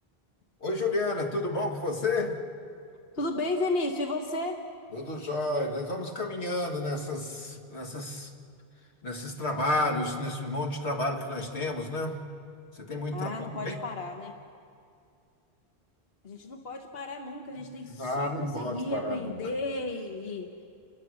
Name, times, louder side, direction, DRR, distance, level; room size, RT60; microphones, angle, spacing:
voice 1, 0.6-2.4 4.9-8.3 9.0-12.2 12.7-13.3 13.6-13.8 17.9-19.4, left 2 dB, 85° left, 2 dB, 2.1 m, -31 dB
voice 2, 3.1-4.6 13.1-14.3 16.2-20.6, left 2 dB, 65° left, 3 dB, 1.5 m, -33 dB
29.5 x 22.5 x 6.4 m, 2.4 s
omnidirectional pair, 1.1 m